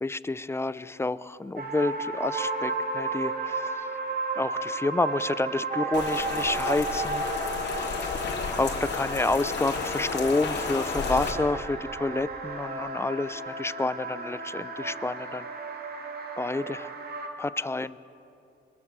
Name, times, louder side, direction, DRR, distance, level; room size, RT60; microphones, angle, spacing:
voice 1, 0.0-3.9 4.4-7.3 7.7-15.5 16.4-16.9 17.4-17.9, left 2 dB, 15° left, 16 dB, 0.6 m, -29 dB
sound 1, 1.6-17.3, right 3 dB, 50° right, 2.9 m, -34 dB
Rain, 5.9-11.3, left 5 dB, 60° left, 3.3 m, -32 dB
23.0 x 21.0 x 7.5 m, 2.8 s
cardioid pair, 90°, 20 cm